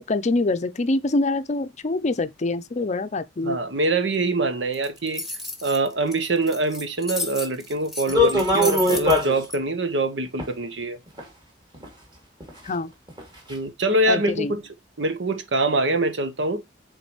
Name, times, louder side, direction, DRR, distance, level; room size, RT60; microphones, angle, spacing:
voice 1, 0.1-3.6 12.6-12.9 14.1-14.5, left 2 dB, 40° left, 0.5 m, -25 dB
voice 2, 3.4-5.2 5.6-11.0 13.5-14.6 15.0-16.6, right 2 dB, 75° right, 1.0 m, -24 dB
sound 1, 4.7-9.6, left 2 dB, ahead, 1.2 m, -33 dB
sound 2, 8.1-9.4 10.4-10.5 11.2-11.3 11.7-11.9 12.4-12.5 13.1-13.2 13.5-13.6, left 2 dB, 25° right, 2.6 m, -20 dB
8.1 x 3.8 x 3.1 m
head